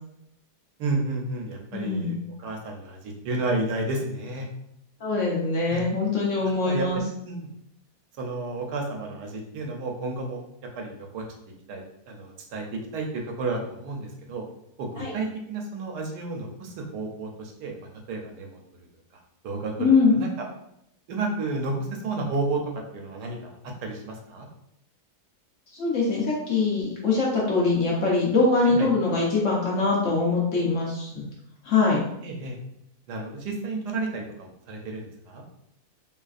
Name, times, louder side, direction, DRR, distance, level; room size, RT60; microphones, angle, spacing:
voice 1, 0.8-4.5 5.7-5.8 6.6-7.5 8.2-10.4 10.8-11.3 11.7-14.4 14.8-18.6 19.4-20.3 21.1-22.6 22.9-24.5 28.6-28.9 32.2-32.6 33.1-35.4, right 2 dB, 85° right, 1 dB, 1.2 m, -32 dB
voice 2, 1.7-2.2 5.0-7.0 15.0-15.1 19.8-20.2 25.8-31.3 31.6-32.0, left 3 dB, 60° left, -4 dB, 0.9 m, -23 dB
3.0 x 2.4 x 2.4 m, 0.78 s
omnidirectional pair, 1.7 m